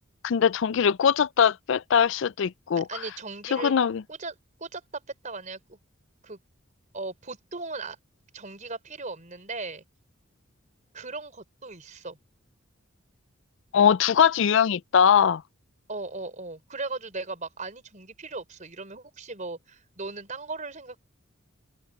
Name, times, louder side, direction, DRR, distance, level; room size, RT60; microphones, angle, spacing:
voice 1, 0.2-2.9 3.5-4.0 13.7-15.4, left 7 dB, 65° left, 0.4 m, -21 dB
voice 2, 2.9-3.7 4.1-5.8 6.2-6.4 6.9-8.0 8.3-9.8 10.9-12.2 15.9-21.0, right 3 dB, 40° right, 4.2 m, -37 dB
open air
head